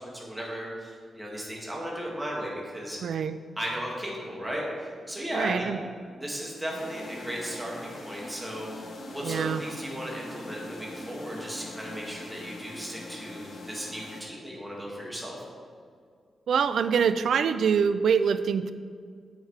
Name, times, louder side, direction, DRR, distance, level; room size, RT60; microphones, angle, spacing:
voice 1, 0.0-3.0 3.6-5.7 6.2-15.4, equal, 10° right, -4 dB, 1.9 m, -36 dB
voice 2, 3.0-3.4 5.3-5.8 9.2-9.6 16.5-18.7, right 7 dB, 75° right, 12 dB, 0.3 m, -25 dB
sound 1, 6.7-14.2, left 1 dB, 60° left, 1.0 m, -42 dB
8.1 x 8.0 x 3.2 m, 2.1 s
wide cardioid pair, 120°, 0 cm